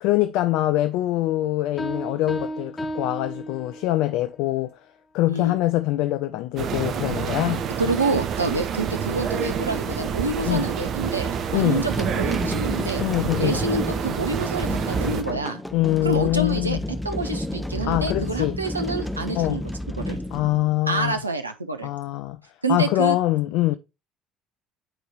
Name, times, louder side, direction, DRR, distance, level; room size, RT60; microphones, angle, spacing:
voice 1, 0.0-4.8 5.1-7.7 10.5-10.7 11.5-11.9 13.0-13.6 15.7-16.8 17.8-18.6 19.3-19.6 20.3-21.2 21.8-22.4 22.7-23.8, left 16 dB, 60° left, 0.4 m, -24 dB
sound 1, 1.8-4.2, equal, 25° left, 1.5 m, -33 dB
sound 2, 6.6-15.2, right 7 dB, 50° right, 0.8 m, -28 dB
voice 2, 7.8-13.0 13.4-15.6 16.0-16.8 17.0-19.6 20.0-20.2 20.9-21.9 22.6-23.2, right 3 dB, 85° right, 0.7 m, -27 dB
sound 3, 11.7-21.2, left 1 dB, 5° left, 0.9 m, -31 dB
8.2 x 4.6 x 3.1 m
figure-of-eight pair, 55°, 0 cm